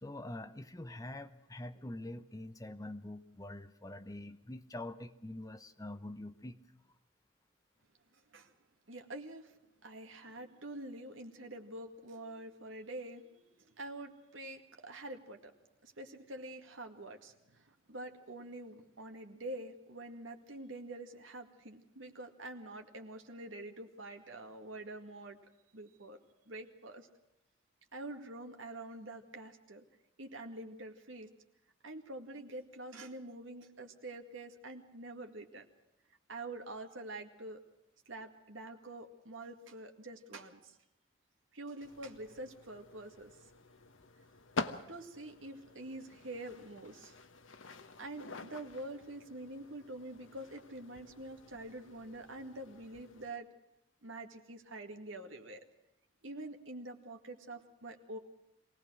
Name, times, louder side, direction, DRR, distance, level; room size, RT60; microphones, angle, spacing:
voice 1, 0.0-6.6, left 1 dB, 15° left, 10 dB, 0.9 m, -45 dB
voice 2, 8.1-8.5 8.9-15.5 15.8-25.4 25.7-26.2 26.5-27.1 27.9-29.8 30.2-31.3 31.8-35.7 36.3-37.6 38.1-40.8 41.5-43.3 44.9-47.2 48.0-53.5 54.0-55.6 56.2-58.2, right 2 dB, 80° right, 5 dB, 2.1 m, -46 dB
sound 1, 41.8-53.3, left 3 dB, 80° left, 1.2 m, -47 dB
23.0 x 18.0 x 6.3 m, 0.90 s
head